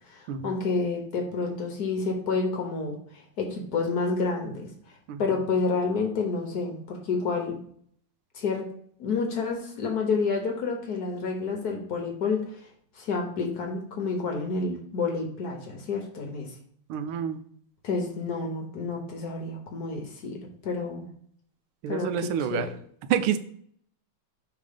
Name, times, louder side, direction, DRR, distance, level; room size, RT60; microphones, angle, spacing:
voice 1, 0.1-3.0 3.4-4.7 5.2-7.6 8.3-8.6 9.0-12.6 13.0-16.5 17.8-21.1 21.9-22.7, left 4 dB, 55° left, 2 dB, 1.3 m, -29 dB
voice 2, 16.9-17.4 21.8-22.7 23.1-23.4, right 9 dB, 85° right, 9 dB, 1.4 m, -28 dB
5.1 x 3.7 x 5.0 m, 0.62 s
omnidirectional pair, 2.2 m